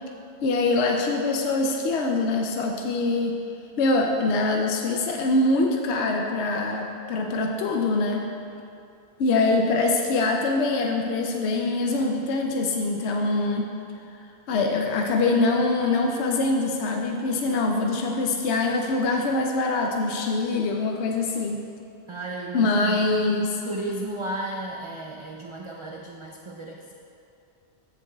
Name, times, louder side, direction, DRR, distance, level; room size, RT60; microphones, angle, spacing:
voice 1, 0.4-3.3 3.8-8.2 9.2-13.7 14.5-21.6 22.5-23.6, left 3 dB, 80° left, 2 dB, 0.9 m, -24 dB
voice 2, 22.1-23.0 23.6-26.9, right 2 dB, 40° right, -1 dB, 0.4 m, -34 dB
14.5 x 6.9 x 2.3 m, 2.6 s
omnidirectional pair, 1.1 m